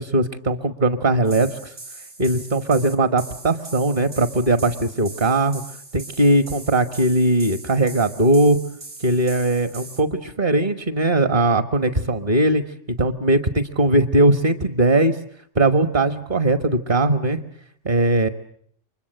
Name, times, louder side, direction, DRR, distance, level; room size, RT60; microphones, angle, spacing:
voice 1, 0.0-1.7 2.2-5.6 5.9-8.6 9.0-12.6 13.0-15.2 15.5-17.4 17.8-18.3, right 2 dB, 40° right, 9 dB, 1.4 m, -19 dB
sound 1, 1.2-10.0, right 3 dB, 80° right, 4.3 m, -40 dB
29.5 x 24.5 x 7.8 m, 0.64 s
omnidirectional pair, 1.3 m